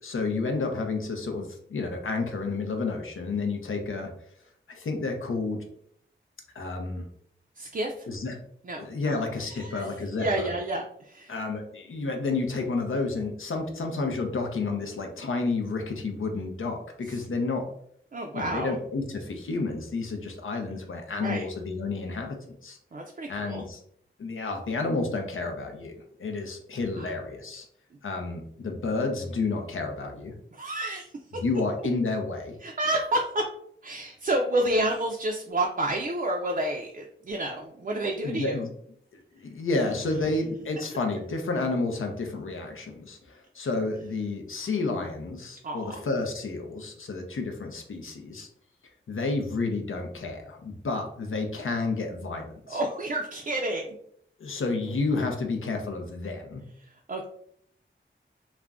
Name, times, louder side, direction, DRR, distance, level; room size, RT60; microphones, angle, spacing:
voice 1, 0.0-4.1 4.7-5.6 6.5-7.1 8.1-8.4 8.8-10.5 11.3-17.7 18.3-22.8 23.3-23.8 24.2-27.7 28.0-30.3 31.3-32.6 38.2-38.7 39.4-48.5 49.1-52.8 54.4-56.6, left 3 dB, 85° left, 3 dB, 0.6 m, -30 dB
voice 2, 7.6-7.9 8.6-9.2 9.4-9.9 10.2-11.3 18.1-18.7 21.2-21.5 22.9-23.7 27.0-27.1 30.5-31.1 32.6-33.4 33.8-38.6 45.6-45.9 52.7-54.0 57.1-57.3, right 1 dB, 40° right, 1 dB, 0.4 m, -29 dB
2.4 x 2.1 x 3.4 m, 0.68 s
wide cardioid pair, 80°, 21 cm